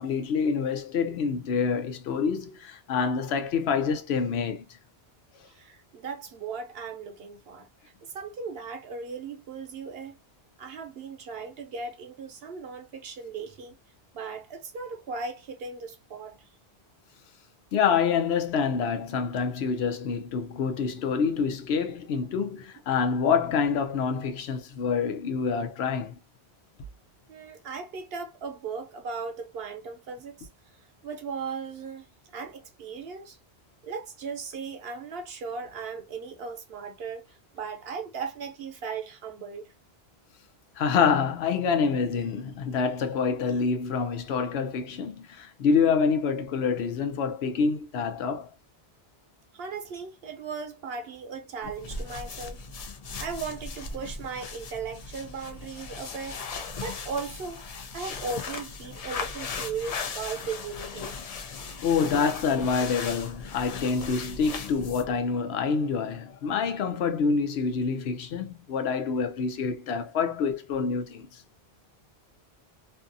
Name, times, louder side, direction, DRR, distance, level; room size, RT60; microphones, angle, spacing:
voice 1, 0.0-4.7 17.7-26.2 40.8-48.5 61.8-71.3, left 5 dB, 80° left, 0.8 m, -27 dB
voice 2, 5.4-10.2 10.6-13.8 14.1-16.5 27.3-30.5 31.0-32.1 32.3-33.4 33.8-39.7 49.5-52.6 53.2-61.4, right 5 dB, 70° right, 0.9 m, -37 dB
sound 1, 51.6-65.2, left 4 dB, 55° left, 0.4 m, -38 dB
2.7 x 2.4 x 2.5 m
omnidirectional pair, 1.1 m